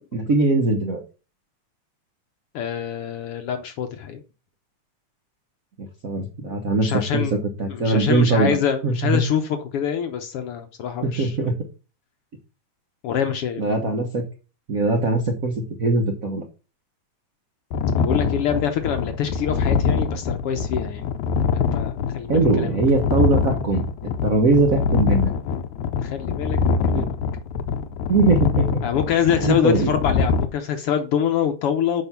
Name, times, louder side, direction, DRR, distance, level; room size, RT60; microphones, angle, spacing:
voice 1, 0.1-1.0 5.8-7.2 7.6-8.6 8.8-9.2 11.0-11.6 13.6-14.2 14.7-16.4 22.3-23.8 24.2-25.3 27.0-27.1 28.1-28.8 29.4-29.9, right 3 dB, 65° right, 3 dB, 0.8 m, -21 dB
voice 2, 2.5-4.2 6.8-7.3 7.7-11.5 13.0-13.7 18.0-21.1 21.5-22.8 26.0-27.2 28.8-32.0, left 8 dB, 65° left, 7 dB, 1.5 m, -25 dB
sound 1, 17.7-30.5, left 5 dB, 85° left, 2.1 m, -24 dB
7.2 x 5.1 x 5.7 m, 0.33 s
omnidirectional pair, 3.3 m